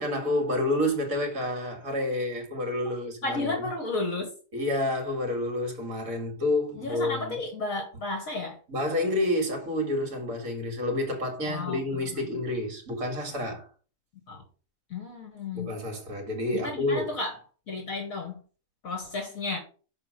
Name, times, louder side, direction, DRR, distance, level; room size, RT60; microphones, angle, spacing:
voice 1, 0.0-3.7 4.5-7.4 8.7-13.7 15.5-17.1, left 1 dB, 60° right, 2.4 m, -29 dB
voice 2, 3.2-4.3 6.7-8.6 11.4-11.8 12.1-12.3 14.3-14.4 14.9-15.8 16.5-17.4 17.7-18.4 18.8-19.6, left 3 dB, 60° left, 1.9 m, -33 dB
6.1 x 4.4 x 6.4 m
omnidirectional pair, 1.7 m